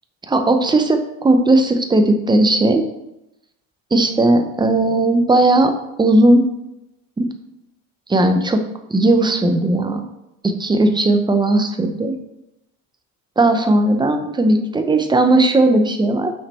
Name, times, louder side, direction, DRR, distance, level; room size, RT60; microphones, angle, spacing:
voice 1, 0.3-2.8 3.9-5.7 6.0-6.4 7.2-7.3 8.1-8.6 8.9-10.0 10.4-12.2 13.4-16.3, right 2 dB, 10° right, 6 dB, 0.6 m, -16 dB
5.8 x 5.4 x 4.3 m, 0.88 s
cardioid pair, 130°, 36 cm